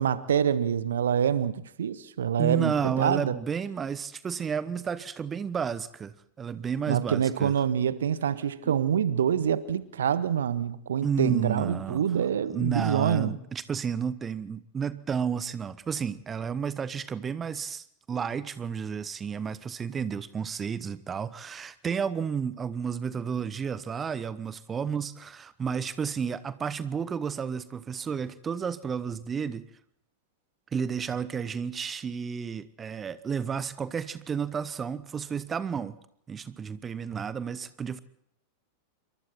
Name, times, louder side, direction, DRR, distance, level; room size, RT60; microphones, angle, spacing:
voice 1, 0.0-3.3 6.9-13.4, right 8 dB, 65° right, 16 dB, 1.1 m, -26 dB
voice 2, 2.4-7.5 8.6-8.8 11.0-12.0 12.5-29.7 30.7-36.0 36.3-38.0, right 6 dB, 20° right, 17 dB, 0.9 m, -32 dB
27.5 x 24.0 x 4.4 m, 0.69 s
figure-of-eight pair, 90°, 0 cm